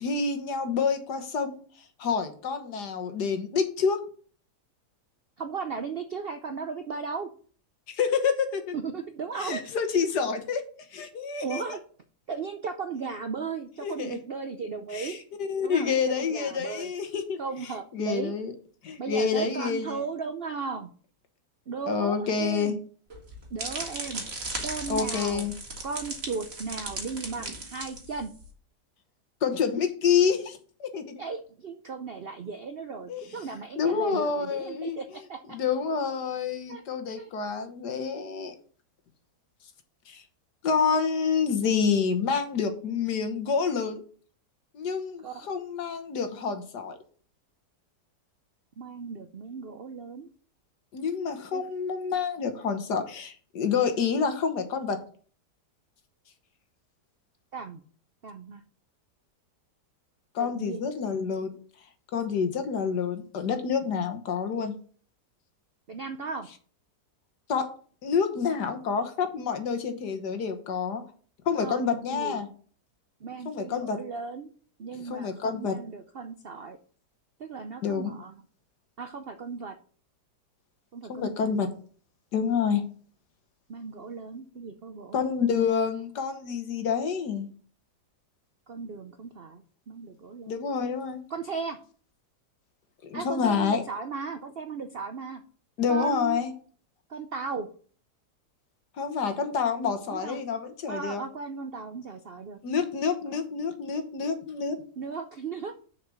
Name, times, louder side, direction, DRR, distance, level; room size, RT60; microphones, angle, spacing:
voice 1, 0.0-1.6 2.0-4.0 7.9-8.7 9.4-10.6 10.9-11.6 13.8-14.2 14.9-17.4 17.9-18.5 18.8-20.0 21.9-22.8 24.9-25.5 29.4-31.2 33.1-33.3 33.8-35.0 35.5-38.5 40.1-40.2 40.6-44.0 44.7-47.0 50.9-55.0 60.4-61.5 62.1-64.7 67.5-67.7 68.0-71.0 71.5-72.5 73.5-74.0 75.0-75.8 77.8-78.1 81.1-81.7 82.3-82.8 85.1-87.5 90.5-91.2 93.0-93.8 95.8-96.5 99.0-101.2 102.6-104.8, left 6 dB, 70° left, 7 dB, 1.8 m, -28 dB
voice 2, 5.4-7.3 8.7-9.6 11.4-11.8 12.3-15.2 15.6-15.9 16.2-16.9 17.4-18.3 19.0-20.9 21.7-22.8 23.5-24.2 24.6-25.5 25.8-28.3 31.2-35.6 36.7-37.3 45.2-45.5 48.8-50.3 51.5-51.6 57.5-57.8 58.2-58.6 60.4-60.9 65.9-66.5 71.5-72.4 73.2-74.5 74.8-76.8 77.4-78.4 79.0-79.8 80.9-81.5 83.7-85.2 88.7-90.7 91.3-91.8 93.1-95.4 95.9-96.4 97.1-97.7 100.1-100.4 100.9-102.6 103.3-103.4 105.0-105.7, right 5 dB, 60° right, 7 dB, 0.6 m, -36 dB
sound 1, 23.1-28.5, right 2 dB, 40° right, 1.8 m, -37 dB
6.6 x 5.0 x 6.8 m, 0.43 s
omnidirectional pair, 1.8 m